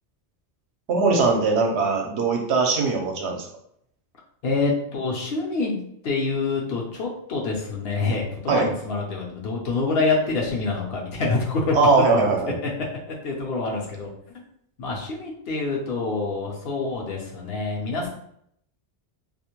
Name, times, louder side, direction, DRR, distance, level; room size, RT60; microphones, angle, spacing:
voice 1, 0.9-3.5 8.5-8.7 11.7-12.6, right 4 dB, 75° right, 1 dB, 0.8 m, -20 dB
voice 2, 4.4-5.8 6.0-12.4 12.6-12.7 13.1-14.1 14.8-18.1, left 3 dB, 65° left, -2 dB, 0.8 m, -26 dB
2.4 x 2.1 x 2.9 m, 0.70 s
omnidirectional pair, 1.2 m